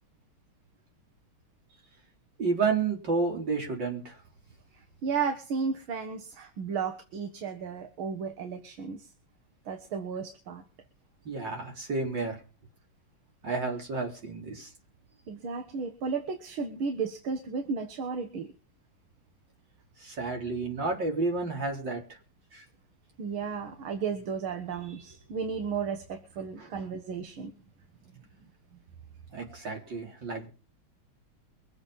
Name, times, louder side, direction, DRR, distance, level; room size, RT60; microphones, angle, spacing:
voice 1, 2.4-4.2 11.2-12.4 13.4-14.7 20.0-22.0 22.5-22.6 26.6-26.7 29.3-30.5, right 4 dB, 60° right, 1 dB, 4.5 m, -31 dB
voice 2, 5.0-9.1 9.7-10.6 15.3-18.5 23.2-27.5, right 5 dB, 85° right, 6 dB, 2.2 m, -34 dB
23.5 x 8.0 x 5.6 m, 0.36 s
omnidirectional pair, 2.2 m